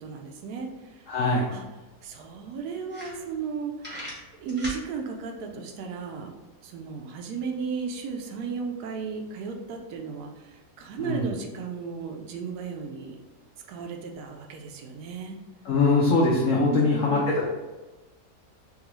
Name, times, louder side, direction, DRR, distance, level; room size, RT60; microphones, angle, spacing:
voice 1, 0.0-1.1 1.5-1.6 2.0-4.0 4.4-6.4 6.6-13.2 13.7-15.4 16.6-17.3, right 5 dB, 75° right, 3 dB, 1.0 m, -35 dB
voice 2, 1.1-1.5 11.0-11.3 15.6-17.5, left 3 dB, 75° left, -3 dB, 0.7 m, -22 dB
sound 1, 1.9-2.0 2.4-2.5 2.8-3.5 3.8-4.8, equal, 10° right, 0.5 m, -38 dB
3.6 x 2.4 x 3.0 m, 1.2 s
omnidirectional pair, 1.8 m